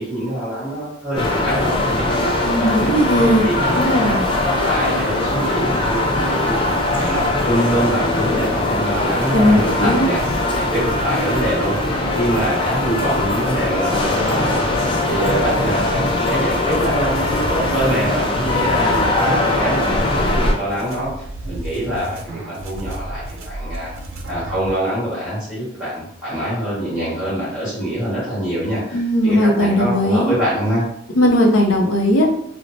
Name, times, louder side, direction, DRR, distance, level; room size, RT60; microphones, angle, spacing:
voice 1, 0.0-2.9 3.4-6.5 6.9-10.2 10.5-11.8 12.1-14.6 15.0-23.9 24.3-30.8, equal, 5° right, -13 dB, 1.2 m, -24 dB
sound 1, 1.2-20.5, left 2 dB, 25° left, 0.4 m, -20 dB
voice 2, 2.4-3.5 3.7-4.2 9.3-10.1 28.9-30.4 31.2-32.3, equal, 75° left, 1 dB, 0.6 m, -17 dB
sound 2, 16.7-24.7, right 1 dB, 80° right, 0.4 m, -33 dB
3.0 x 2.0 x 2.6 m, 0.72 s
head